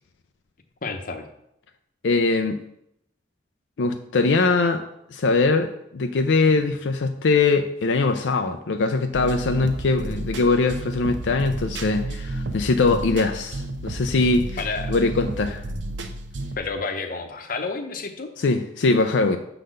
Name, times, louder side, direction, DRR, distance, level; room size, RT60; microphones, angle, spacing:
voice 1, 0.8-1.3 14.6-14.9 16.6-18.3, left 4 dB, 50° left, 6 dB, 0.8 m, -30 dB
voice 2, 2.0-2.6 3.8-4.9 5.1-14.6 14.9-15.6 18.4-19.4, left 3 dB, 85° left, 6 dB, 0.5 m, -22 dB
sound 1, 9.1-16.6, right 2 dB, 90° right, 0.7 m, -32 dB
6.7 x 4.0 x 6.4 m, 0.78 s
head